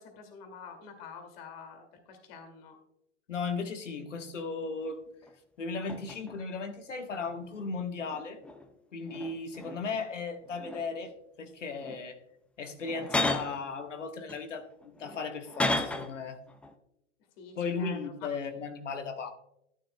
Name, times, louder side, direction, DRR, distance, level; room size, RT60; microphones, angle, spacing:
voice 1, 0.0-2.8 17.4-18.3, left 6 dB, 55° left, 4 dB, 2.3 m, -47 dB
voice 2, 3.3-5.0 5.6-8.4 8.9-11.1 11.4-12.2 12.6-16.4 17.5-19.3, left 4 dB, 85° left, 6 dB, 1.4 m, -36 dB
sound 1, 5.2-5.3 5.9-6.4 7.2-8.7 9.0-10.0 10.4-11.1 11.8-12.0 12.8-13.6 14.3-16.2 16.5-16.7, left 2 dB, 5° left, 0.4 m, -35 dB
14.0 x 9.6 x 2.2 m, 0.79 s
hypercardioid pair, 105°, 36 cm